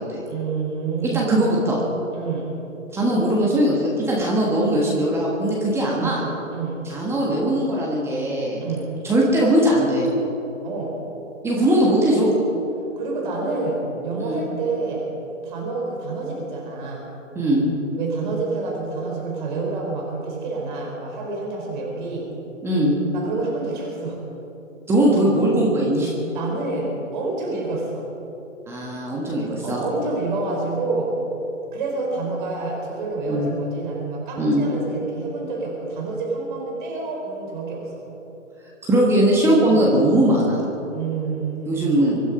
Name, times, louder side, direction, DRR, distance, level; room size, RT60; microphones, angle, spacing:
voice 1, 0.3-1.4 2.1-2.5 5.9-6.2 6.5-6.8 8.6-8.9 10.6-11.0 13.0-15.1 15.4-17.1 18.0-22.3 23.1-24.2 26.3-28.1 29.6-31.2 31.7-38.0 39.6-39.8 40.9-42.0, right 3 dB, 35° right, -1 dB, 4.9 m, -28 dB
voice 2, 1.1-1.8 2.9-6.2 6.8-8.6 9.0-10.1 11.4-12.3 14.2-14.4 17.3-17.7 22.6-22.9 24.9-26.1 28.7-29.8 33.3-33.5 34.4-34.6 38.8-40.6 41.7-42.2, right 1 dB, 5° right, -4 dB, 1.5 m, -20 dB
24.5 x 11.0 x 5.3 m, 3.0 s
figure-of-eight pair, 140°, 40 cm